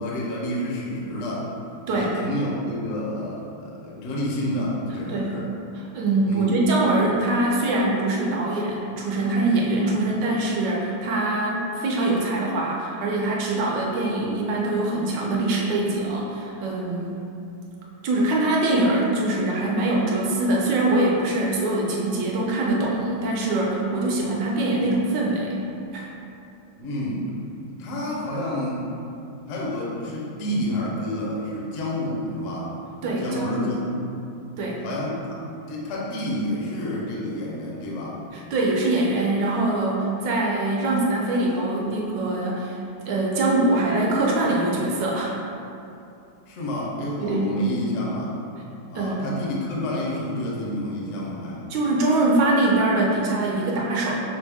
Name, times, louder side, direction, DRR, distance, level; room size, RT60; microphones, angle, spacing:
voice 1, 0.0-1.5 1.9-5.5 6.3-6.6 26.8-27.3 27.8-28.9 29.5-32.8 33.2-34.0 34.8-35.4 35.7-38.2 46.5-48.4 48.9-51.7, left 1 dB, 65° left, -4 dB, 0.8 m, -29 dB
voice 2, 5.7-17.2 18.0-25.5 25.9-26.1 33.0-33.7 34.6-34.8 38.3-42.8 43.1-45.3 47.2-47.5 48.9-49.2 51.7-54.1, right 2 dB, 75° right, -3 dB, 1.2 m, -23 dB
5.8 x 2.0 x 3.4 m, 2.7 s
omnidirectional pair, 2.1 m